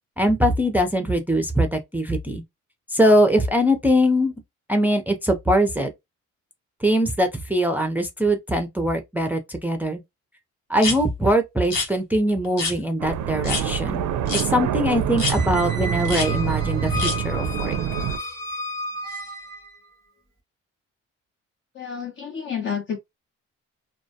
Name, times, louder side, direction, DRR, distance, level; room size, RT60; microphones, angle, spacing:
voice 1, 0.2-2.4 2.9-4.3 4.7-5.9 6.8-10.0 10.7-14.1 14.4-17.8, equal, 5° right, 0.5 m, -22 dB
sound 1, 10.8-11.0 11.6-11.9 12.6-12.8 13.4-13.6 14.3-14.5 15.2-15.4 16.0-16.3 17.0-17.2, left 4 dB, 85° left, 1.0 m, -26 dB
sound 2, 13.0-18.2, right 9 dB, 75° right, 0.5 m, -26 dB
Squeak, 15.3-19.8, left 1 dB, 10° left, 0.9 m, -33 dB
voice 2, 21.7-23.0, left 7 dB, 40° left, 0.6 m, -30 dB
2.1 x 2.1 x 2.7 m
cardioid pair, 90°, 30 cm